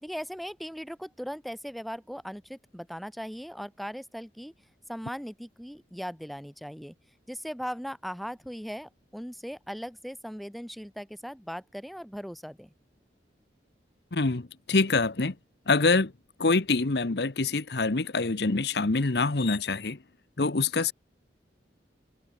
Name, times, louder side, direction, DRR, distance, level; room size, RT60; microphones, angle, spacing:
voice 1, 0.0-4.5 4.9-6.9 7.3-12.7, equal, ahead, 1.9 m, -38 dB
voice 2, 14.1-15.3 15.7-16.1 16.4-20.0 20.4-20.9, left 3 dB, 65° left, 1.0 m, -25 dB
head